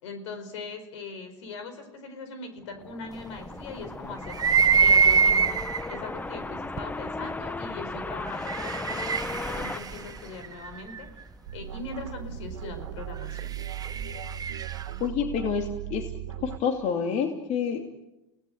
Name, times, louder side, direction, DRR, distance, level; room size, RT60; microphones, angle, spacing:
voice 1, 0.0-5.6 5.9-11.1 11.5-13.5, left 3 dB, 80° left, 9 dB, 4.9 m, -40 dB
sound 1, 2.6-10.9, left 2 dB, 10° left, 0.9 m, -36 dB
sound 2, 4.3-6.0 6.8-6.9 8.2-11.1 13.2-14.9, right 5 dB, 25° right, 1.4 m, -24 dB
sound 3, 11.5-16.6, right 11 dB, 90° right, 1.9 m, -38 dB
voice 2, 15.0-16.1 16.4-18.0, left 6 dB, 50° left, 4 dB, 2.7 m, -28 dB
30.0 x 18.5 x 8.0 m, 0.95 s
hypercardioid pair, 95°, 15 cm